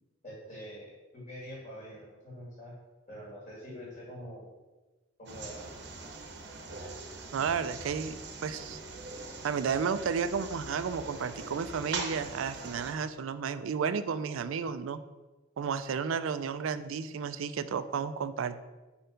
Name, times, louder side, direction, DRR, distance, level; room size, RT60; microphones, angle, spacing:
voice 1, 0.2-2.7 3.1-4.5 5.2-5.9, equal, 40° left, -6 dB, 2.1 m, -45 dB
sound 1, 5.3-12.9, right 3 dB, 55° right, 0.8 m, -42 dB
voice 2, 7.3-8.8 9.4-15.0 15.6-18.6, right 6 dB, 90° right, 12 dB, 0.4 m, -32 dB
5.2 x 4.4 x 5.1 m, 1.2 s
head